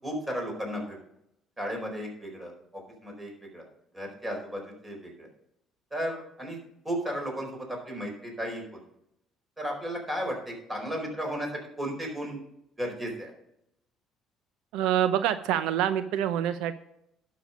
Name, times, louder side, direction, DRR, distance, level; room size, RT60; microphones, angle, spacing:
voice 1, 0.0-1.0 1.6-2.5 3.0-3.7 3.9-5.3 5.9-6.6 6.8-8.6 9.6-11.5 11.8-12.4 12.8-13.3, equal, 15° right, 1 dB, 4.5 m, -34 dB
voice 2, 14.7-16.8, right 10 dB, 80° right, 11 dB, 0.6 m, -26 dB
11.5 x 6.7 x 5.2 m, 0.78 s
cardioid pair, 120°, 0 cm